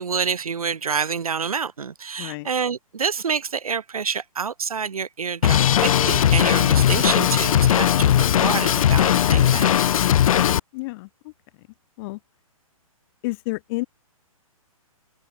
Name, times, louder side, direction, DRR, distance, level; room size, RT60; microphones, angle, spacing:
voice 1, 0.0-9.7, right 6 dB, 75° right, 4.7 m, -27 dB
voice 2, 2.2-2.5 10.0-11.3 12.0-12.2 13.2-13.8, left 23 dB, 40° left, 4.3 m, -31 dB
Drum kit, 5.4-10.6, left 10 dB, 70° left, 0.4 m, -18 dB
hypercardioid pair, 130°, 18 cm